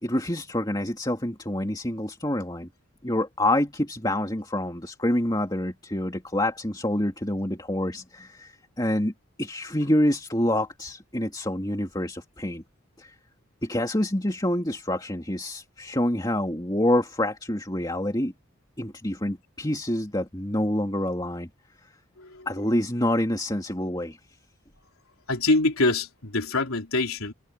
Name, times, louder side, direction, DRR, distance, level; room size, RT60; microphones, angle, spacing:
voice 1, 0.0-2.7 3.0-9.1 9.4-12.6 13.0-13.1 13.6-18.3 18.8-21.5 21.8-21.9 22.5-24.2, left 1 dB, 20° left, 2.6 m, -27 dB
voice 2, 25.3-27.3, left 2 dB, 90° left, 3.7 m, -24 dB
head